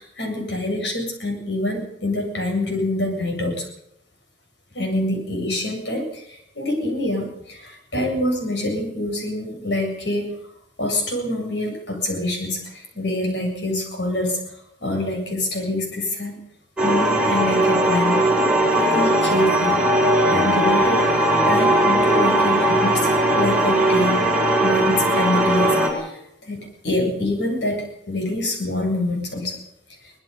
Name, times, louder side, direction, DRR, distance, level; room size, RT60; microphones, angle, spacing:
voice 1, 0.0-3.7 4.7-10.4 10.8-14.4 14.8-16.4 16.8-18.3 18.6-19.8 20.3-24.2 24.6-29.6, left 1 dB, 70° left, 3 dB, 7.7 m, -26 dB
sound 1, 16.8-25.9, right 1 dB, 5° right, 5.7 m, -18 dB
24.0 x 19.5 x 5.5 m, 0.76 s
head